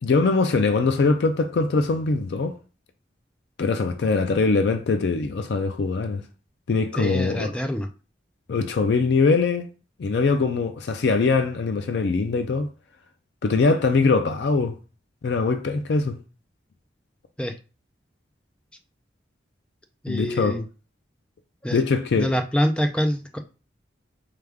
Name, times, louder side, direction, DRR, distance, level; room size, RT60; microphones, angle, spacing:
voice 1, 0.0-2.6 3.6-6.2 6.7-7.5 8.5-9.7 10.0-12.7 13.4-14.8 15.2-16.2 20.1-20.6 21.7-22.3, left 4 dB, 70° left, 0.4 m, -22 dB
voice 2, 7.0-7.9 17.4-17.5 20.0-20.6 21.6-21.8 22.1-23.4, equal, 5° left, 0.4 m, -25 dB
4.8 x 2.3 x 3.4 m
head